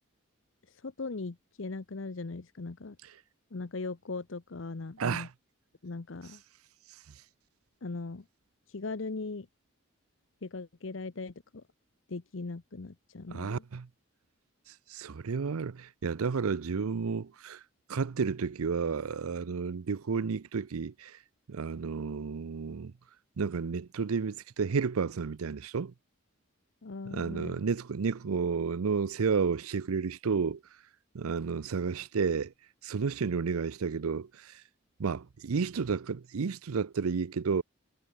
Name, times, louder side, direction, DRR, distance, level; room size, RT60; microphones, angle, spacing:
voice 1, 0.7-3.0 3.5-5.3 5.8-6.4 7.8-8.2 8.7-9.5 10.4-11.6 12.1-13.6 26.8-27.6, left 3 dB, 65° left, 0.8 m, -39 dB
voice 2, 5.0-5.3 13.3-13.9 14.9-17.6 17.9-21.2 21.5-22.9 23.4-25.9 27.1-30.6 31.1-32.5 32.8-34.6 35.0-37.6, right 5 dB, 90° right, 0.5 m, -31 dB
head